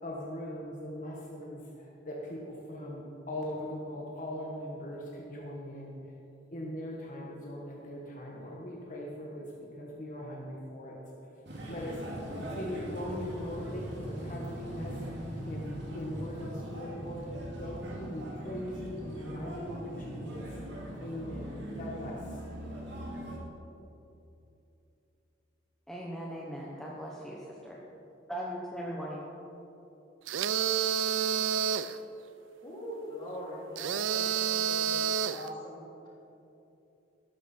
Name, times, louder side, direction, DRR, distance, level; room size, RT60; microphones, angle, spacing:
voice 1, 0.0-6.0 6.5-11.0 11.7-12.0 12.3-14.9 15.5-20.4 21.0-22.2 23.4-23.5, left 1 dB, 45° left, -3 dB, 1.5 m, -40 dB
sound 1, 11.5-23.4, equal, 60° right, 2.5 m, -40 dB
voice 2, 25.9-27.8 28.3-29.3, equal, ahead, -4 dB, 1.0 m, -39 dB
sound 2, 30.3-32.0 33.8-35.5, right 8 dB, 85° right, 0.5 m, -29 dB
voice 3, 32.6-36.1, equal, 25° left, -6 dB, 3.4 m, -42 dB
13.0 x 12.0 x 4.5 m, 2.9 s
head